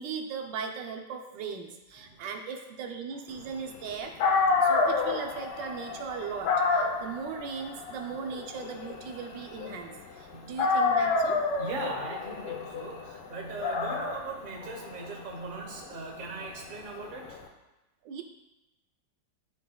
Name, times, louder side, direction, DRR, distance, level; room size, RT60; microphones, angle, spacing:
voice 1, 0.0-4.2 4.6-11.5 18.0-18.2, right 6 dB, 90° right, 4 dB, 1.4 m, -38 dB
voice 2, 2.0-2.3 10.3-10.5 11.6-17.4, right 3 dB, 35° right, -1 dB, 0.9 m, -39 dB
Dog, 3.9-4.0 4.2-10.2 10.6-17.4, left 4 dB, 80° left, 1.3 m, -29 dB
10.5 x 3.9 x 2.2 m, 1.0 s
omnidirectional pair, 1.9 m